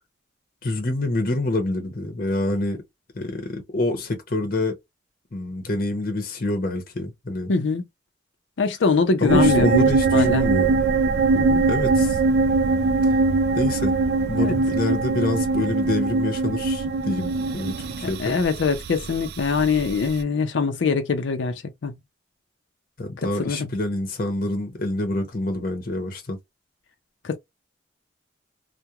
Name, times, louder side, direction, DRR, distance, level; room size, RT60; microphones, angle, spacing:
voice 1, 0.6-2.8 3.1-4.8 5.3-7.5 9.2-10.8 11.7-12.2 13.5-13.9 14.3-18.4 23.0-26.4, left 2 dB, 50° left, 0.7 m, -26 dB
voice 2, 7.5-7.8 8.6-9.8 10.1-10.5 11.3-11.6 14.4-14.6 18.0-21.5 21.8-21.9 23.2-23.7 27.2-27.4, left 4 dB, 90° left, 0.5 m, -23 dB
sound 1, 9.3-20.2, right 3 dB, 60° right, 0.3 m, -22 dB
2.3 x 2.1 x 2.8 m
head